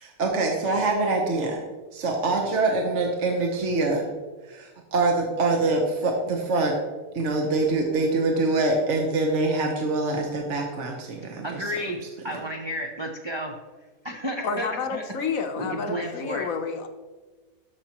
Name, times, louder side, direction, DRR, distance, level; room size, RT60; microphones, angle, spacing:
voice 1, 0.0-1.6 1.9-4.0 4.4-6.7 7.1-11.6, right 2 dB, 55° right, 1 dB, 1.2 m, -24 dB
voice 2, 11.4-13.5 14.0-15.0 15.6-16.5, equal, 30° right, 0 dB, 0.5 m, -32 dB
voice 3, 14.4-16.9, left 5 dB, 65° left, 6 dB, 1.2 m, -30 dB
13.5 x 5.8 x 2.9 m, 1.3 s
omnidirectional pair, 1.6 m